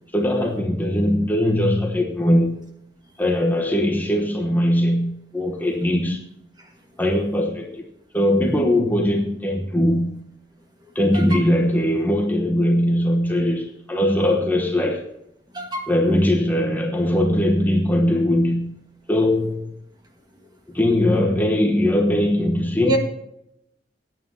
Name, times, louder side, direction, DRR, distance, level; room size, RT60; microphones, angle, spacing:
voice 1, 0.1-2.6 3.2-6.2 7.0-10.2 10.9-15.1 15.9-18.7 19.1-19.7 20.7-23.0, left 1 dB, 10° left, 1 dB, 1.0 m, -20 dB
voice 2, 15.5-15.9 22.8-23.0, right 1 dB, 25° right, 3 dB, 1.7 m, -25 dB
17.5 x 9.5 x 2.8 m, 0.80 s
head